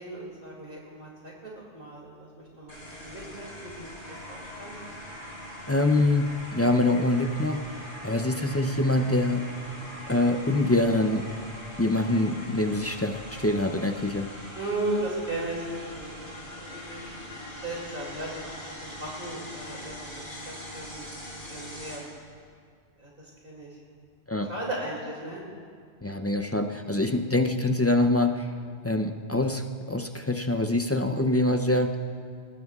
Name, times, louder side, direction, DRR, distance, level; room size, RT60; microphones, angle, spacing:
voice 1, 0.0-2.1 2.6-2.7 3.0-3.9 4.3-4.7 14.5-16.3 16.6-17.0 17.6-18.3 18.8-20.1 20.4-21.0 21.5-22.0 23.0-23.7 24.5-25.4, right 2 dB, 50° right, -4 dB, 2.8 m, -35 dB
sound 1, 2.7-22.0, equal, 80° left, 5.0 m, -42 dB
voice 2, 5.7-7.6 8.0-9.5 10.1-11.3 11.8-14.3 24.3-24.5 26.0-28.5 28.8-29.6 29.9-32.0, left 2 dB, 25° left, 5 dB, 0.3 m, -25 dB
23.5 x 20.0 x 2.4 m, 2.1 s
omnidirectional pair, 1.2 m